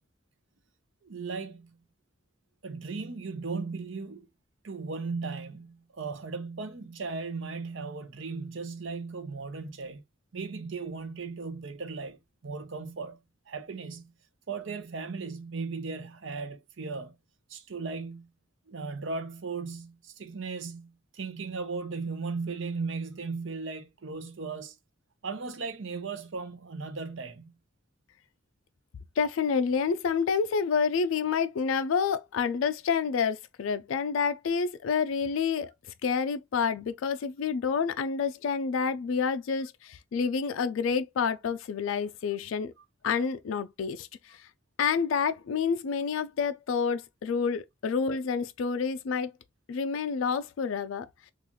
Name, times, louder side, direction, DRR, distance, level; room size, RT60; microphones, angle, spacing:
voice 1, 1.0-1.8 2.6-4.3 4.6-10.0 10.3-12.2 12.4-13.2 13.5-14.1 14.5-17.1 17.5-18.3 18.7-24.7 25.2-27.5, right 4 dB, 65° right, 0.6 m, -36 dB
voice 2, 29.2-35.7 36.0-42.7 43.0-44.5 44.8-49.3 49.7-51.1, left 6 dB, 80° left, 0.4 m, -28 dB
3.8 x 2.4 x 3.0 m
head